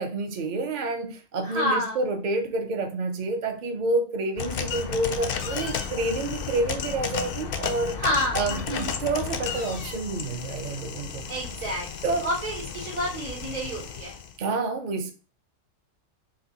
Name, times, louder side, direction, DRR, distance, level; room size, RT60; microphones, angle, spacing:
voice 1, 0.0-8.0 8.3-11.3 12.0-12.3 14.4-15.1, right 2 dB, 45° right, 0.6 m, -28 dB
voice 2, 1.4-2.0 8.0-8.9 11.3-14.1, equal, 85° right, 3.1 m, -29 dB
sound 1, 4.4-14.3, left 7 dB, 65° left, 0.5 m, -33 dB
5.3 x 2.2 x 3.9 m
omnidirectional pair, 1.6 m